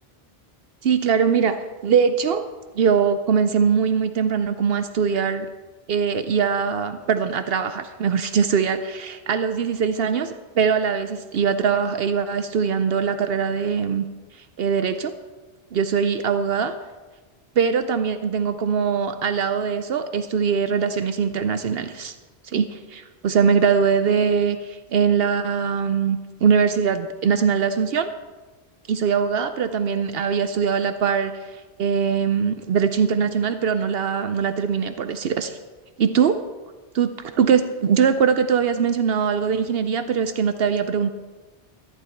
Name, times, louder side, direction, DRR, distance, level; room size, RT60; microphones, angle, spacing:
voice 1, 0.8-2.4 2.7-5.5 5.9-14.1 14.4-15.1 15.7-16.7 17.6-22.1 22.4-28.1 28.9-35.6 36.0-36.4 36.9-41.1, right 6 dB, 70° right, 10 dB, 0.8 m, -22 dB
14.0 x 11.0 x 4.5 m, 1.3 s
omnidirectional pair, 1.1 m